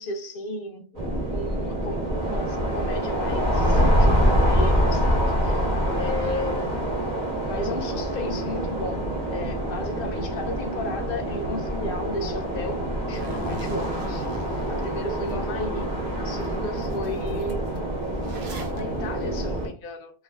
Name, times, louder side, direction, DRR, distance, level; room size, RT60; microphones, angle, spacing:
voice 1, 0.0-5.7 5.9-7.0 7.4-9.0 9.3-12.8 13.1-14.3 14.7-15.9 16.2-17.6 18.7-20.2, left 2 dB, 65° left, 5 dB, 0.7 m, -34 dB
sound 1, 0.9-19.7, equal, 45° right, 0.9 m, -25 dB
Zipper (clothing), 13.1-15.3 15.8-15.9 16.4-16.5 16.8-18.8, right 3 dB, 80° right, 0.8 m, -39 dB
2.4 x 2.3 x 2.2 m, 0.40 s
omnidirectional pair, 1.1 m